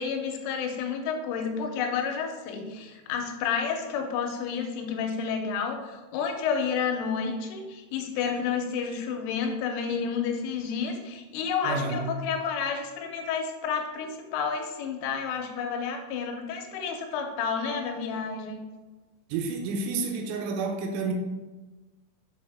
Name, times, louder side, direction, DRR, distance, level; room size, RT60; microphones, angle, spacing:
voice 1, 0.0-18.6, left 6 dB, 90° left, 3 dB, 3.3 m, -30 dB
voice 2, 11.6-12.1 19.3-21.1, right 4 dB, 80° right, 3 dB, 3.2 m, -30 dB
7.1 x 4.3 x 3.5 m, 1.2 s
omnidirectional pair, 5.5 m